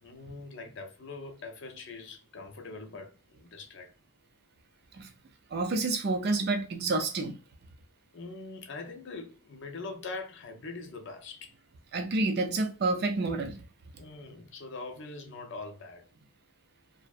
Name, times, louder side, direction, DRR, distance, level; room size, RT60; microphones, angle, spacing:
voice 1, 0.0-3.9 8.1-11.5 14.0-16.0, left 3 dB, 55° left, 0.5 m, -42 dB
voice 2, 5.5-7.4 11.9-13.6, right 3 dB, 45° right, 0.4 m, -29 dB
2.6 x 2.1 x 2.3 m
head